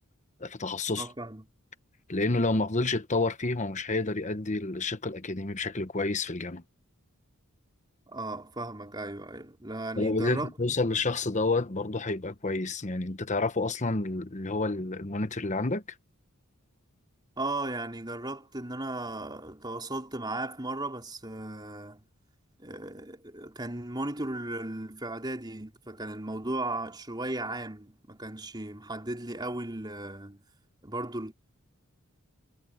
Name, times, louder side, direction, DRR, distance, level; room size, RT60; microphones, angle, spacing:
voice 1, 0.4-1.1 2.1-6.6 10.0-15.8, left 3 dB, 35° left, 1.1 m, -29 dB
voice 2, 1.0-1.4 8.1-10.5 17.4-22.0 22.6-30.4 30.8-31.3, right 2 dB, 20° right, 4.4 m, -36 dB
head